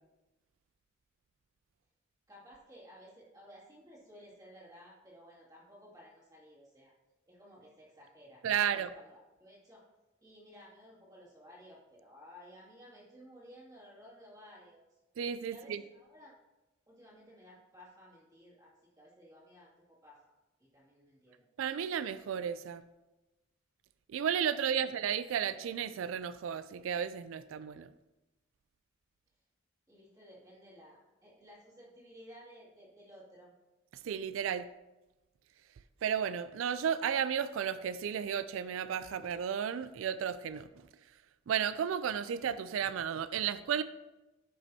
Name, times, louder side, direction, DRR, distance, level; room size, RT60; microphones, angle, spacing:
voice 1, 2.3-6.9 7.3-9.8 10.2-15.0 15.5-16.3 16.9-20.2 20.6-21.5 24.8-24.9 29.9-33.5, equal, 20° right, -6 dB, 2.3 m, -56 dB
voice 2, 8.4-8.9 15.2-15.8 21.6-22.8 24.1-27.9 34.0-34.7 36.0-40.9 41.5-43.8, right 8 dB, 75° right, 14 dB, 0.3 m, -33 dB
10.5 x 5.9 x 2.8 m, 1.0 s
head